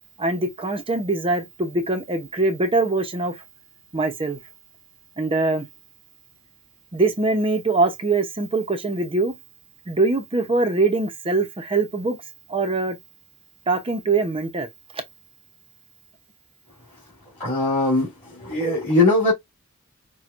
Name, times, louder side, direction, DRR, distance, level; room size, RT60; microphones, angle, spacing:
voice 1, 0.2-3.4 3.9-4.4 5.2-5.7 6.9-9.4 9.9-12.2 12.5-13.0 13.7-14.7 14.9-15.0, right 3 dB, 25° right, 0.7 m, -23 dB
voice 2, 17.4-19.3, left 2 dB, 35° left, 2.8 m, -20 dB
5.9 x 2.3 x 2.5 m
head